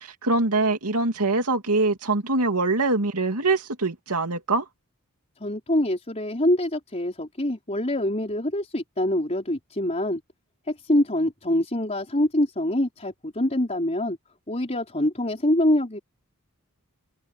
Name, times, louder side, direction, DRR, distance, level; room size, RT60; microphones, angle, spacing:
voice 1, 0.0-4.6, right 3 dB, 90° right, 2.7 m, -23 dB
voice 2, 5.4-10.2 10.7-14.2 14.5-16.0, left 1 dB, 30° left, 4.4 m, -25 dB
head